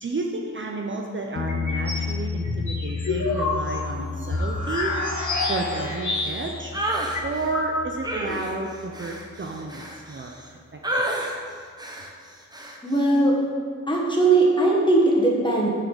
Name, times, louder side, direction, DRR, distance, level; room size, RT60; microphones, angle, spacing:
voice 1, 0.0-5.0 5.5-6.7 7.2-10.3 11.0-11.1, right 3 dB, 40° right, 1 dB, 0.5 m, -31 dB
sound 1, 1.4-9.0 12.0-12.1, left 5 dB, 50° left, 0.5 m, -33 dB
sound 2, 1.5-2.1 2.4-6.6 6.9-7.0 7.1-8.1, left 2 dB, 70° left, 1.5 m, -28 dB
sound 3, 6.7-7.2 8.0-10.5 10.8-11.4 11.8-12.1 12.5-12.8, right 1 dB, 15° right, 0.8 m, -29 dB
voice 2, 12.8-13.3 13.9-15.7, right 2 dB, 15° left, -4 dB, 1.4 m, -19 dB
6.5 x 3.8 x 6.2 m, 2.1 s
wide cardioid pair, 75°, 31 cm